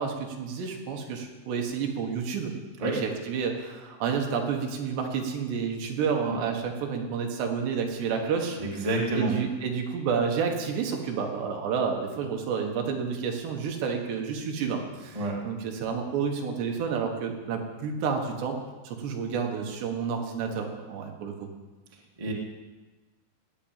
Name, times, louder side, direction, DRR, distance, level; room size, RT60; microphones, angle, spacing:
voice 1, 0.0-2.5 2.8-8.9 9.1-18.6 18.8-21.5, right 6 dB, 65° right, 2 dB, 3.3 m, -30 dB
voice 2, 8.6-9.3 15.1-15.3 22.2-22.3, right 2 dB, 45° right, -3 dB, 0.4 m, -28 dB
19.5 x 7.0 x 8.9 m, 1.2 s
omnidirectional pair, 5.8 m